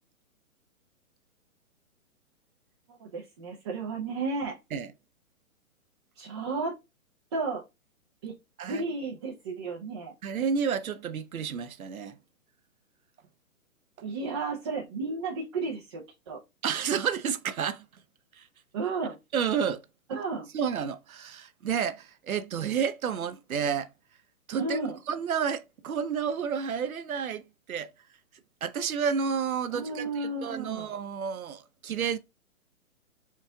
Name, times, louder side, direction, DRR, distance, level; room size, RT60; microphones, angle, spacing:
voice 1, 2.9-4.6 6.2-6.7 7.3-7.6 8.2-8.3 8.6-10.1 14.0-16.4 18.7-19.2 20.1-20.5 24.6-25.0 29.7-30.9, right 3 dB, 20° right, 0.4 m, -33 dB
voice 2, 10.2-12.2 16.6-17.8 18.3-18.5 19.3-19.8 20.5-23.9 24.5-24.8 25.1-27.4 27.7-27.9 28.6-32.2, right 7 dB, 85° right, 0.6 m, -30 dB
4.5 x 2.4 x 3.5 m
hypercardioid pair, 130°, 41 cm